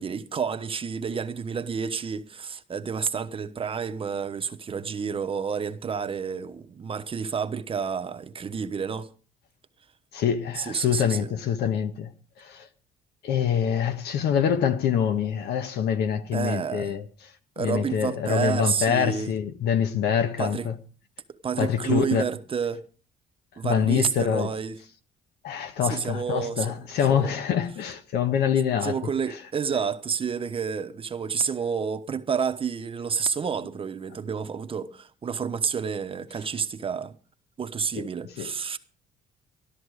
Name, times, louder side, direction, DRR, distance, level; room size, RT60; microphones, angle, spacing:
voice 1, 0.0-9.1 10.6-11.3 16.3-16.9 17.6-19.3 20.4-20.7 21.4-22.8 23.6-24.8 25.8-26.8 27.1-27.3 28.8-37.1 37.6-38.8, right 6 dB, 30° right, 1.0 m, -29 dB
voice 2, 10.1-12.1 12.4-12.7 13.2-17.0 17.6-20.7 21.6-22.2 23.6-24.5 25.4-29.0 37.9-38.1 38.4-38.5, left 8 dB, 75° left, 1.4 m, -25 dB
13.0 x 13.0 x 4.8 m
cardioid pair, 110°, 17 cm